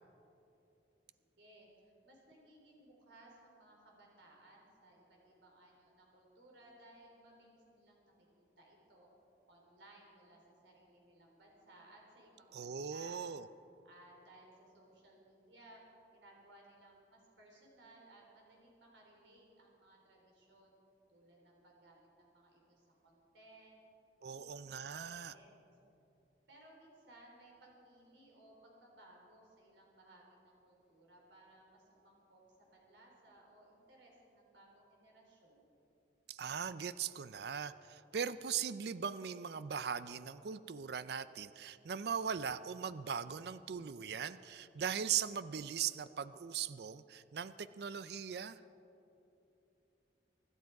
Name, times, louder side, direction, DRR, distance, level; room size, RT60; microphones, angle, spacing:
voice 1, 1.4-9.1 9.5-13.2 13.8-15.8 16.1-20.7 21.1-23.8 24.2-24.6 24.9-25.6 26.5-32.4 32.7-35.7, right 1 dB, 90° right, -1 dB, 3.9 m, -62 dB
voice 2, 12.5-13.5 24.2-25.3 36.3-48.6, right 7 dB, 60° right, 15 dB, 0.4 m, -39 dB
24.0 x 12.0 x 4.7 m, 2.9 s
head